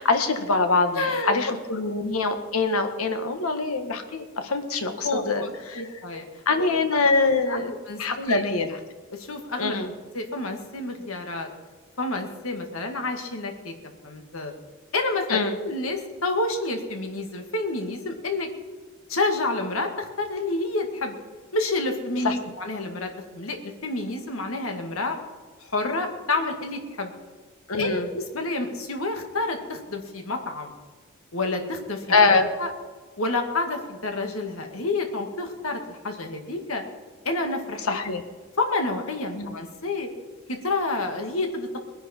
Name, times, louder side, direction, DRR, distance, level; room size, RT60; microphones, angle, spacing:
voice 1, 0.0-5.8 6.4-7.7 8.0-8.8 9.6-9.9 15.3-15.6 22.2-22.3 27.7-28.1 32.1-32.5 37.8-38.2 39.3-39.5, left 3 dB, 90° left, 7 dB, 1.5 m, -24 dB
voice 2, 0.9-1.4 5.0-6.4 7.5-7.6 7.9-8.4 9.1-9.8 10.1-11.5 12.0-13.7 14.0-14.5 14.9-18.5 19.1-21.2 21.5-25.2 25.6-27.1 27.8-30.7 31.3-32.0 32.6-32.7 33.2-36.8 37.2-38.0 38.6-40.1 40.5-41.7, left 2 dB, 75° left, 4 dB, 2.0 m, -29 dB
20.5 x 10.5 x 4.4 m, 1.4 s
head